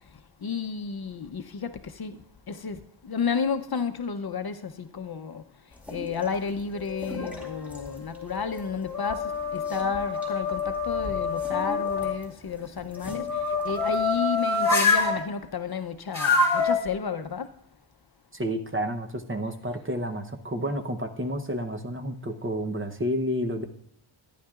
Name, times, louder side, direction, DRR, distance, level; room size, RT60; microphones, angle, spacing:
voice 1, 0.1-17.6, left 5 dB, 50° left, 0.7 m, -32 dB
sound 1, 5.7-14.3, left 1 dB, 5° right, 2.4 m, -44 dB
sound 2, 6.8-7.6 8.2-12.1 13.0-15.2 16.1-16.8, left 4 dB, 30° left, 2.8 m, -26 dB
voice 2, 18.3-23.7, equal, 25° right, 0.8 m, -30 dB
14.5 x 10.0 x 2.4 m
wide cardioid pair, 120°, 49 cm